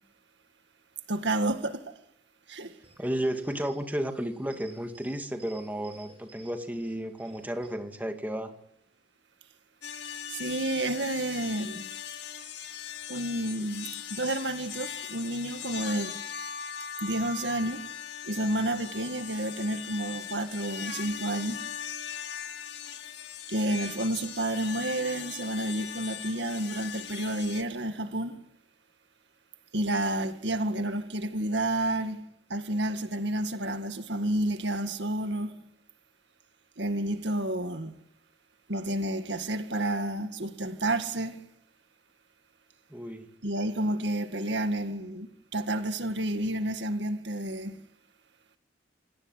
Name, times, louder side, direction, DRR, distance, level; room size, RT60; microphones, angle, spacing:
voice 1, 1.1-2.0 2.5-2.8 10.3-11.9 13.1-16.2 17.0-17.9 18.2-21.6 23.5-28.4 29.7-32.2 32.5-35.6 36.8-37.9 38.7-41.4 43.4-47.8, right 1 dB, 65° right, 1.9 m, -30 dB
sound 1, 2.5-7.7, right 3 dB, 30° right, 7.1 m, -56 dB
voice 2, 3.0-8.5 42.9-43.3, right 1 dB, 10° right, 2.1 m, -33 dB
sound 2, 9.8-27.6, left 8 dB, 60° left, 2.1 m, -39 dB
28.5 x 18.5 x 9.9 m
head